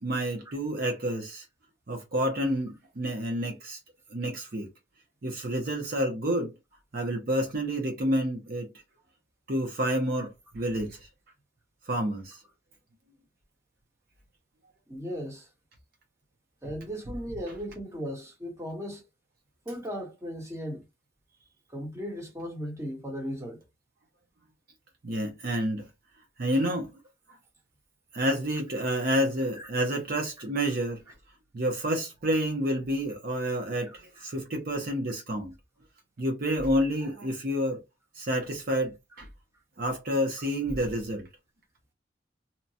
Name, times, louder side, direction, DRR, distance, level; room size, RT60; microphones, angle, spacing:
voice 1, 0.0-1.5 1.9-3.8 4.1-4.7 5.2-6.5 6.9-8.7 9.5-11.1 11.9-12.4 25.0-25.9 26.4-26.9 27.3-27.4 28.1-31.0 31.5-35.5 36.2-37.8 38.2-39.3 39.8-41.3, equal, 50° right, 0.7 m, -29 dB
voice 2, 14.9-15.5 16.6-19.0 19.6-20.8 21.7-23.6 29.5-29.7, equal, 15° right, 1.1 m, -36 dB
2.9 x 2.2 x 2.7 m
head